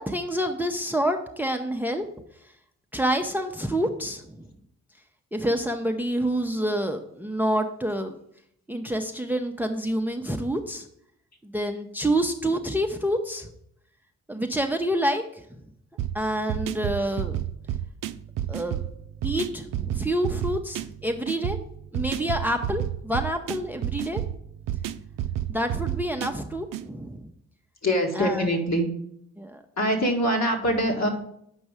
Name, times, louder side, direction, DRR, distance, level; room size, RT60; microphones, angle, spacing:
voice 1, 0.0-2.1 2.9-4.5 5.3-8.1 8.7-10.9 11.4-13.5 14.3-15.6 16.1-17.4 18.5-18.8 19.2-21.6 21.9-24.2 25.5-27.3 28.2-28.5 29.4-29.6, right 1 dB, 5° right, 5 dB, 0.8 m, -27 dB
sound 1, 16.0-26.9, right 11 dB, 70° right, 0.5 m, -31 dB
voice 2, 27.8-28.9 29.8-31.1, equal, 50° left, 1 dB, 1.9 m, -23 dB
7.3 x 5.3 x 4.9 m, 0.72 s
supercardioid pair, 45°, 34 cm